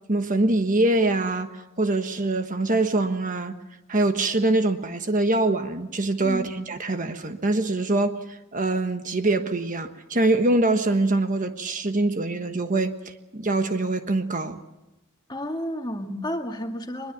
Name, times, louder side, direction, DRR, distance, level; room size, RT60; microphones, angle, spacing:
voice 1, 0.1-3.6 3.9-14.6, right 2 dB, 40° right, 7 dB, 1.3 m, -24 dB
voice 2, 15.3-17.1, equal, 20° left, 4 dB, 1.9 m, -31 dB
23.0 x 21.5 x 7.3 m, 0.94 s
head